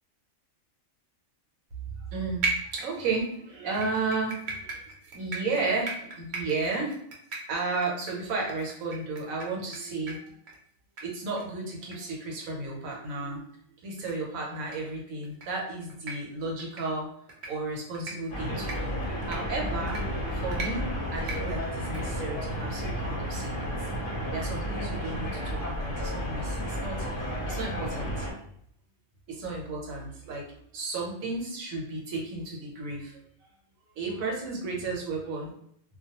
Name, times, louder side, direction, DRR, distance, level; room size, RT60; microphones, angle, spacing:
voice 1, 2.1-2.4 2.7-4.8 5.1-6.9 7.5-10.3 11.0-13.5 13.8-17.1 17.5-20.0 20.3-23.7 24.3-28.3 29.3-30.4 30.7-33.2 34.0-35.5, right 3 dB, 80° right, -1 dB, 1.1 m, -33 dB
sound 1, 2.4-3.3 3.7-9.8 10.1-10.2 10.5-10.6 11.0-11.1 11.4-11.5 11.9-12.0 12.4-12.5 12.9-13.0 14.0-14.1 14.6-14.8 15.2-15.5 15.9-16.1 16.6-16.8 17.3-17.5 17.9-18.1 18.6-18.8 19.2-19.4 19.9-20.0 20.5-20.7 21.2-21.4 21.8-22.0, right 3 dB, 55° right, 0.5 m, -35 dB
sound 2, 18.3-28.3, equal, 50° left, 0.7 m, -32 dB
2.3 x 2.2 x 2.8 m, 0.69 s
omnidirectional pair, 1.4 m